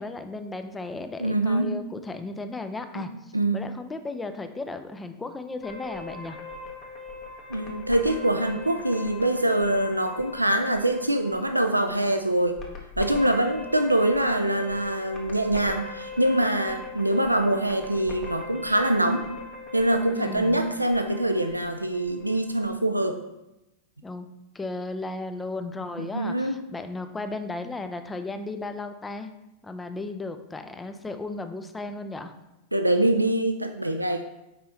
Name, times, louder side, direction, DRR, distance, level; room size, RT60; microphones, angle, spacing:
voice 1, 0.0-6.4 20.1-20.6 24.0-24.3 24.5-29.3 29.6-32.3, left 3 dB, 10° left, 8 dB, 0.4 m, -35 dB
voice 2, 1.2-1.8 3.0-3.1 3.3-3.7 7.5-12.6 13.0-19.2 19.7-23.2 26.0-26.6 32.7-34.2, right 1 dB, 85° right, 7 dB, 0.3 m, -24 dB
sound 1, 5.6-22.7, left 3 dB, 30° left, 1.0 m, -41 dB
5.4 x 4.3 x 4.0 m, 0.93 s
figure-of-eight pair, 90°, 0 cm